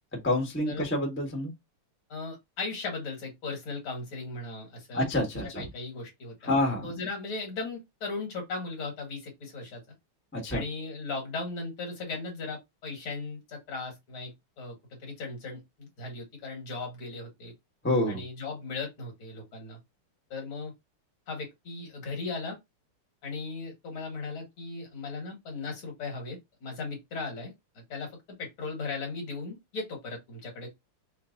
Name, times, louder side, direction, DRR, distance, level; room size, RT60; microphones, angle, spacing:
voice 1, 0.2-1.5 4.9-5.6 6.5-6.9 10.3-10.6 17.8-18.2, left 1 dB, 10° left, 0.7 m, -27 dB
voice 2, 2.1-5.1 5.6-6.6 6.8-9.8 10.5-17.5 18.1-19.8 20.3-20.7 21.3-22.6 23.2-28.1 28.4-30.7, left 3 dB, 70° left, 2.5 m, -37 dB
5.5 x 2.0 x 2.6 m
omnidirectional pair, 2.4 m